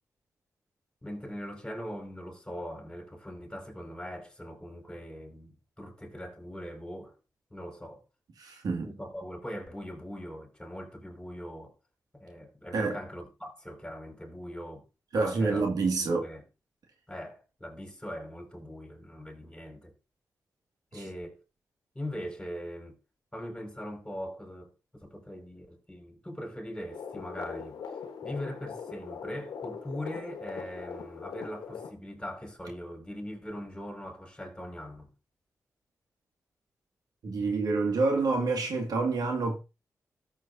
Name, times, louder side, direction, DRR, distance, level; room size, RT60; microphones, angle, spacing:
voice 1, 1.0-7.1 7.5-8.0 8.8-11.7 12.1-14.8 15.1-15.7 16.0-16.4 17.1-19.9 20.9-21.4 21.9-23.0 23.3-27.8 28.2-35.1, equal, 10° left, 5.1 m, -41 dB
voice 2, 8.4-8.9 12.7-13.0 15.1-16.2 20.9-21.0 37.2-39.6, right 3 dB, 75° right, 2.2 m, -27 dB
sound 1, 26.9-31.9, left 6 dB, 85° left, 1.3 m, -41 dB
13.5 x 7.5 x 2.7 m
supercardioid pair, 45°, 7 cm